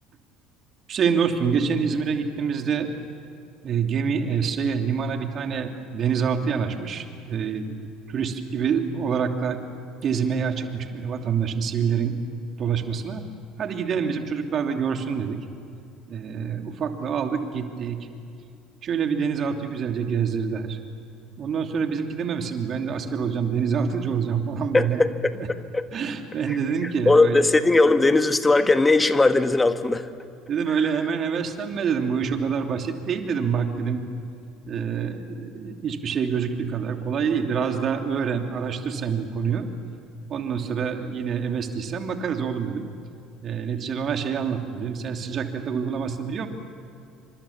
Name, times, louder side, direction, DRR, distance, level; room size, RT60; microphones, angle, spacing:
voice 1, 0.9-2.9 3.6-7.7 8.1-9.6 10.0-12.2 12.6-13.2 13.6-15.4 16.1-18.0 18.8-20.8 21.4-25.0 25.3-25.5 25.9-27.4 30.5-34.0 34.7-39.7 40.3-42.9 43.4-46.5, right 6 dB, 45° right, 4 dB, 2.9 m, -26 dB
voice 2, 24.7-25.9 26.5-26.6 26.8-30.1, left 2 dB, 15° left, 9 dB, 1.8 m, -19 dB
28.5 x 26.0 x 7.3 m, 2.5 s
hypercardioid pair, 65°, 0 cm